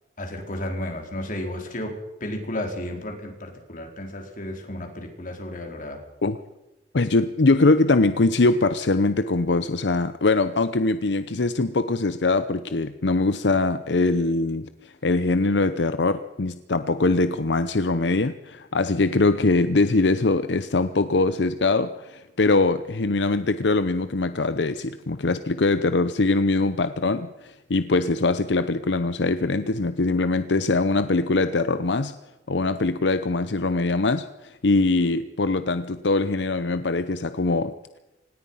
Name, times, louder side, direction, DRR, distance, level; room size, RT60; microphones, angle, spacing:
voice 1, 0.2-1.9 2.2-6.0, left 1 dB, 50° left, 3 dB, 4.3 m, -33 dB
voice 2, 6.9-32.1 32.5-37.7, left 3 dB, 80° left, 11 dB, 0.8 m, -22 dB
26.0 x 19.5 x 5.7 m, 1.0 s
head